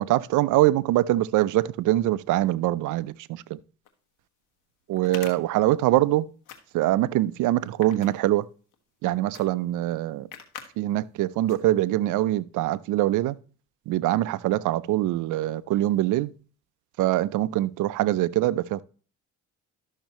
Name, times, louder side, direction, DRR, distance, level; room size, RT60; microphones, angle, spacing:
voice 1, 0.0-3.6 4.9-6.3 6.7-8.5 9.0-10.3 10.8-13.4 13.9-16.3 17.0-18.8, right 15 dB, 90° right, 0.5 m, -23 dB
sound 1, 3.8-3.9 4.9-6.1 6.4-7.0 7.6-8.7 9.3-9.5 9.8-9.9 10.3-10.7 11.1-11.2 11.5-12.0, left 9 dB, 90° left, 1.4 m, -43 dB
12.0 x 6.5 x 3.0 m
cardioid pair, 90°, 30 cm